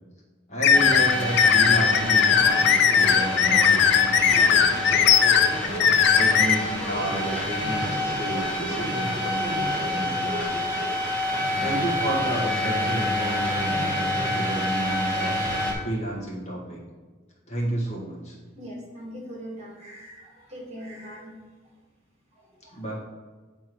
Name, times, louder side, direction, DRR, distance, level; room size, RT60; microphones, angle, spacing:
voice 1, 0.5-4.7 6.1-10.6 11.6-16.8 17.5-18.3 22.7-23.0, right 1 dB, 35° left, -4 dB, 1.6 m, -31 dB
sound 1, 0.6-6.5, left 7 dB, 55° left, 0.5 m, -18 dB
sound 2, 0.7-15.7, left 1 dB, 5° left, 1.4 m, -27 dB
voice 2, 18.6-21.3 22.4-22.8, equal, 35° right, -3 dB, 2.0 m, -41 dB
9.2 x 3.5 x 4.6 m, 1.4 s
head